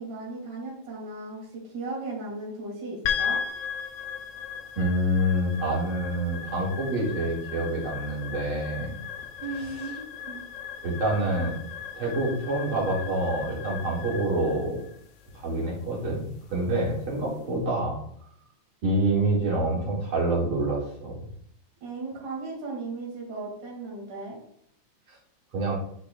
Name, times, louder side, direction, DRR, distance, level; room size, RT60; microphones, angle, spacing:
voice 1, 0.0-3.4 9.4-10.4 17.1-17.3 21.8-24.4, right 3 dB, 70° right, -3 dB, 3.7 m, -36 dB
sound 1, 3.0-17.4, left 7 dB, 70° left, 1.4 m, -37 dB
voice 2, 4.8-8.9 9.6-9.7 10.8-11.6 12.0-14.8 15.3-18.0 18.8-21.2 25.5-25.8, right 1 dB, 45° right, -4 dB, 2.5 m, -27 dB
9.5 x 5.8 x 2.3 m, 0.67 s
omnidirectional pair, 3.7 m